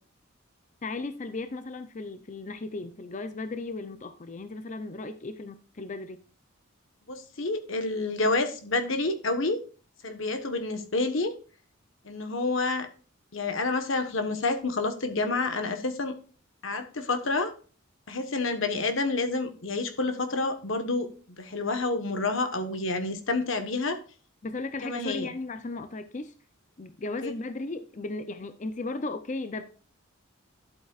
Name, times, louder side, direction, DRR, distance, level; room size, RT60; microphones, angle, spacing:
voice 1, 0.8-6.2 24.4-26.3 26.8-29.6, left 3 dB, 35° left, 0.6 m, -36 dB
voice 2, 7.1-9.6 10.0-11.3 12.0-12.9 13.3-16.2 16.6-17.5 18.1-24.0 24.8-25.3 27.2-27.3, left 3 dB, 70° left, 1.3 m, -29 dB
11.5 x 8.0 x 2.4 m
head